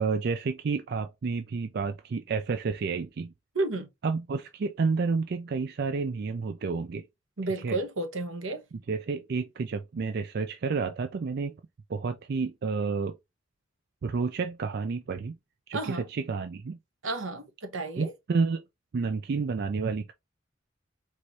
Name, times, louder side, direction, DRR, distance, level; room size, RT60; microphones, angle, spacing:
voice 1, 0.0-3.3 4.0-7.0 7.6-7.8 8.9-11.5 11.9-13.2 14.0-15.4 15.7-16.8 18.0-18.6 18.9-20.1, right 4 dB, 55° right, 0.4 m, -30 dB
voice 2, 3.5-3.9 7.4-8.6 15.7-16.1 17.0-18.1, right 2 dB, 85° right, 1.0 m, -31 dB
4.6 x 3.0 x 2.6 m
head